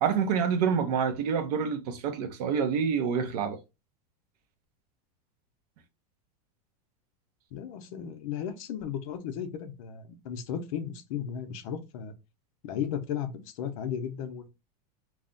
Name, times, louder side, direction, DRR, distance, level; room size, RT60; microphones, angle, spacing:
voice 1, 0.0-3.6, right 6 dB, 70° right, 0.6 m, -27 dB
voice 2, 7.5-12.1 12.6-14.5, left 8 dB, 60° left, 0.5 m, -35 dB
2.4 x 2.0 x 3.6 m
supercardioid pair, 155°, 21 cm